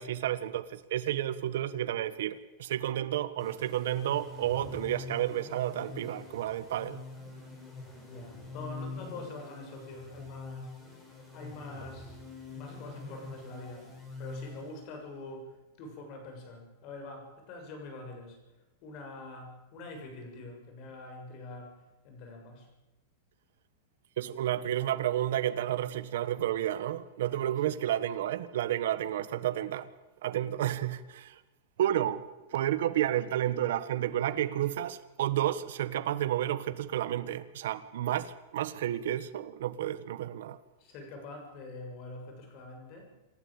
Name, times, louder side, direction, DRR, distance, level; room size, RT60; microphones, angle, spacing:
voice 1, 0.0-7.0 24.2-29.9 30.2-31.4 31.8-32.2 32.5-40.6, right 12 dB, 70° right, 1.4 m, -31 dB
sound 1, 3.4-15.1, left 3 dB, 15° left, 5.8 m, -45 dB
voice 2, 8.1-10.8 11.3-12.2 12.5-18.4 18.8-22.7 27.6-27.8 40.8-43.1, left 2 dB, 35° left, 7.0 m, -45 dB
27.5 x 13.0 x 8.9 m
supercardioid pair, 165°, 0 cm